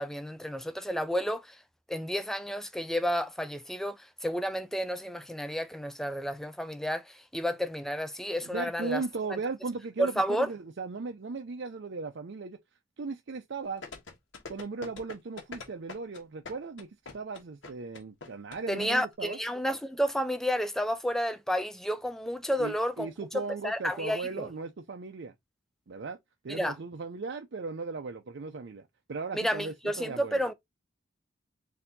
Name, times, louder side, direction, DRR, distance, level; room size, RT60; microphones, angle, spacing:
voice 1, 0.0-1.6 1.9-9.0 9.3-9.4 10.0-10.5 18.7-23.1 23.6-24.5 26.5-26.8 29.3-30.5, equal, ahead, 0.4 m, -31 dB
voice 2, 8.4-12.6 13.0-13.8 14.5-16.9 17.1-19.4 22.6-25.3 25.9-26.2 26.4-30.4, right 4 dB, 55° right, 0.5 m, -37 dB
sound 1, 13.8-18.9 19.1-19.2, left 4 dB, 60° left, 1.3 m, -43 dB
4.4 x 2.7 x 3.9 m
head